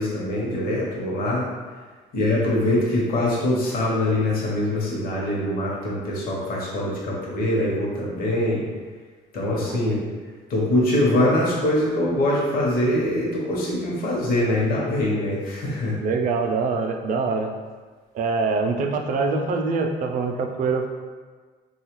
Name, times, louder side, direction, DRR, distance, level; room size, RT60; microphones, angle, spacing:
voice 1, 0.0-1.5 2.1-8.6 9.3-10.0 10.5-16.0, left 1 dB, 60° left, -4 dB, 0.8 m, -23 dB
voice 2, 16.0-17.5 18.1-20.9, right 4 dB, 50° right, 4 dB, 0.4 m, -24 dB
3.4 x 2.3 x 3.0 m, 1.4 s
cardioid pair, 110°, 17 cm